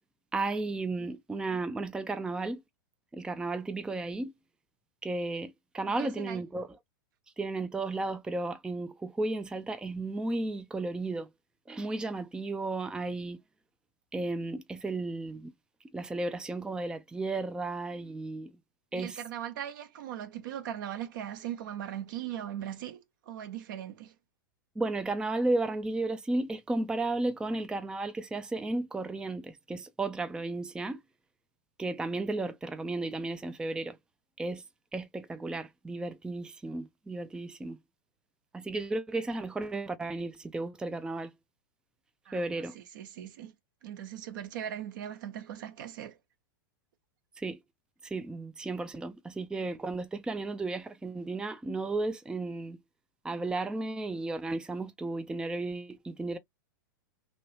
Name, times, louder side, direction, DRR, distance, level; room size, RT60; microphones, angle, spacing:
voice 1, 0.3-2.6 3.1-4.3 5.0-6.7 7.4-11.3 11.7-13.4 14.1-15.5 15.9-18.5 18.9-19.2 24.8-31.0 31.8-34.0 34.4-34.6 34.9-37.8 38.5-41.3 42.3-42.8 47.4-47.6 48.0-52.8 53.2-56.4, right 2 dB, 5° right, 0.5 m, -34 dB
voice 2, 5.8-6.4 18.9-24.1 42.3-42.4 42.7-43.5 43.8-46.2, right 10 dB, 65° right, 1.1 m, -39 dB
3.0 x 2.9 x 2.9 m
hypercardioid pair, 115°, 12 cm